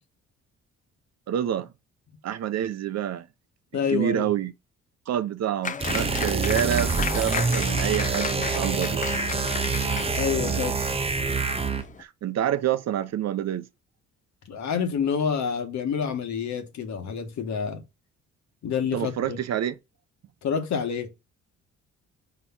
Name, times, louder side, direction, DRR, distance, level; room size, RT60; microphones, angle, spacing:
voice 1, 1.3-1.7 2.2-3.3 3.9-4.5 5.1-9.1 12.0-13.7 18.9-19.7, right 10 dB, 60° right, 0.7 m, -27 dB
voice 2, 3.7-4.3 10.1-10.8 14.5-17.8 18.6-19.4 20.4-21.1, left 7 dB, 65° left, 1.4 m, -28 dB
Applause, 5.6-12.0, left 6 dB, 25° left, 0.5 m, -33 dB
sound 1, 5.8-11.9, right 4 dB, 20° right, 0.7 m, -26 dB
4.6 x 4.2 x 5.7 m
cardioid pair, 90°, 30 cm